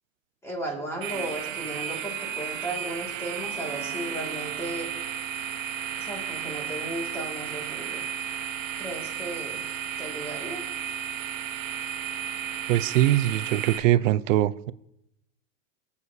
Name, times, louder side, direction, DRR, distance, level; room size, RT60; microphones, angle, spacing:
voice 1, 0.4-4.9 6.0-8.0 8.8-9.7 10.0-10.7, right 1 dB, 5° left, 2.3 m, -35 dB
sound 1, 1.0-13.8, right 8 dB, 85° right, 1.2 m, -33 dB
voice 2, 12.7-14.7, right 13 dB, 70° right, 0.6 m, -22 dB
23.0 x 8.3 x 2.8 m
supercardioid pair, 160°, 40 cm